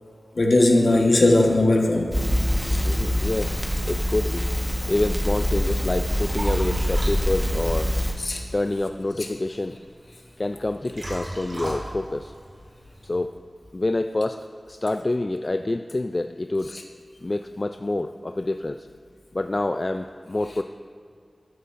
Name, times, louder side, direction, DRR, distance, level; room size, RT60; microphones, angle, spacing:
voice 1, 0.4-2.2 2.6-2.8 8.2-8.4, left 2 dB, 65° left, 1 dB, 1.2 m, -18 dB
Crackle, 2.1-8.2, equal, 10° left, 1.3 m, -24 dB
voice 2, 2.8-4.5 4.9-7.9 8.5-9.8 10.4-12.3 13.0-13.4 13.7-14.4 14.7-16.8 17.2-18.9 19.3-20.6, left 2 dB, 40° left, 7 dB, 0.3 m, -27 dB
Liquid, 5.8-13.2, right 1 dB, 80° right, 2.8 m, -39 dB
14.0 x 9.4 x 2.6 m, 2.3 s
wide cardioid pair, 50°, 0 cm